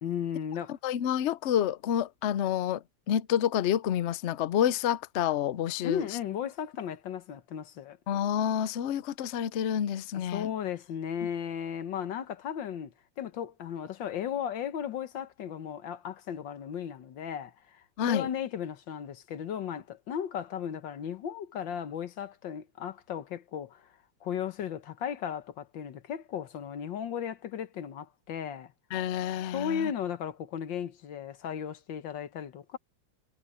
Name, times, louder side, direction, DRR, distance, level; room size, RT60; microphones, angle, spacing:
voice 1, 0.0-0.8 5.8-8.0 10.1-23.9 24.2-28.7 29.5-32.8, left 8 dB, 90° left, 1.8 m, -35 dB
voice 2, 0.8-6.0 8.1-10.5 18.0-18.3 28.9-29.9, left 10 dB, 70° left, 0.6 m, -29 dB
omnidirectional pair, 2.0 m